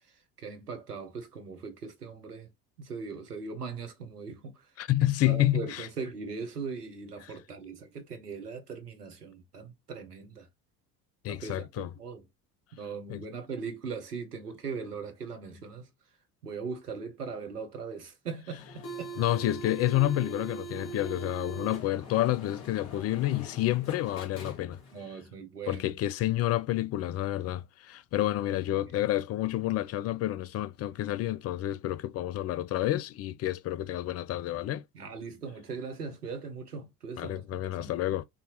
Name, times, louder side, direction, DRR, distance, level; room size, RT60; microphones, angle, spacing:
voice 1, 0.4-2.5 2.8-4.7 5.3-10.5 11.3-12.2 12.7-15.9 16.4-19.1 24.9-25.9 34.9-38.0, right 5 dB, 85° right, 1.0 m, -40 dB
voice 2, 4.8-5.9 7.2-7.3 11.2-11.9 13.1-13.2 19.2-24.8 25.7-34.8 37.2-38.2, left 14 dB, 35° left, 0.4 m, -29 dB
sound 1, 18.6-25.0, right 3 dB, 55° left, 2.3 m, -42 dB
6.3 x 2.8 x 2.8 m
figure-of-eight pair, 55°, 46 cm